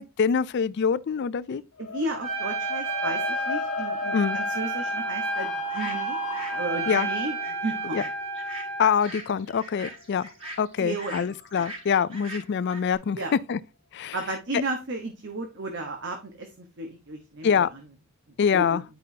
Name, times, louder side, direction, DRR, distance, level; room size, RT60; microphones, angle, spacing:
voice 1, 0.0-1.6 4.1-4.4 6.9-7.1 7.9-8.0 8.8-10.3 10.6-13.6 13.9-14.2 17.4-17.7 18.4-18.8, left 7 dB, 50° left, 0.4 m, -25 dB
sound 1, 1.8-12.0, left 5 dB, 85° left, 1.3 m, -38 dB
voice 2, 1.8-6.2 6.5-7.4 7.6-8.1 10.8-11.4 13.1-13.3 14.1-17.7 18.5-18.8, right 2 dB, 55° right, 1.2 m, -33 dB
Trumpet, 2.2-8.9, right 2 dB, 80° right, 3.0 m, -30 dB
sound 2, 5.7-6.6 6.8-13.0, right 1 dB, 25° right, 3.3 m, -41 dB
10.5 x 5.2 x 2.7 m
head